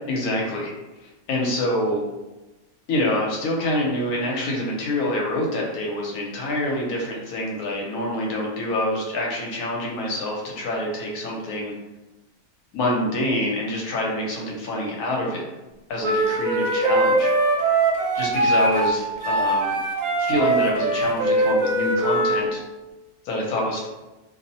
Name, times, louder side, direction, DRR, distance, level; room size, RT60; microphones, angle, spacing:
voice 1, 0.1-0.7 1.3-2.1 2.9-11.7 12.7-15.5 15.9-17.7 18.1-19.8 20.2-22.6 23.2-23.9, left 1 dB, 80° left, -2 dB, 1.1 m, -26 dB
Wind instrument woodwind instrument, 16.0-22.5, right 2 dB, 75° right, 1.0 m, -21 dB
2.6 x 2.0 x 2.6 m, 1.1 s
omnidirectional pair, 1.6 m